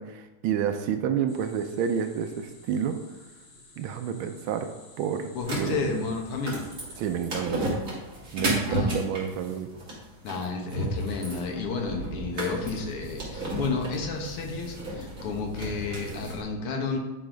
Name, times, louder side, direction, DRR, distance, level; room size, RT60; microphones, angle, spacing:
voice 1, 0.0-3.0 3.8-4.7 5.0-5.3 5.6-6.0 7.0-7.7 8.3-9.7, right 8 dB, 75° right, 8 dB, 1.4 m, -29 dB
sound 1, 1.3-7.3, left 3 dB, 60° left, 1.7 m, -53 dB
voice 2, 5.4-6.7 8.7-9.0 10.2-17.0, left 4 dB, 85° left, 2 dB, 2.1 m, -31 dB
sound 2, 5.4-16.4, right 1 dB, 40° right, 2.3 m, -33 dB
9.3 x 4.1 x 5.0 m, 1.1 s
omnidirectional pair, 2.4 m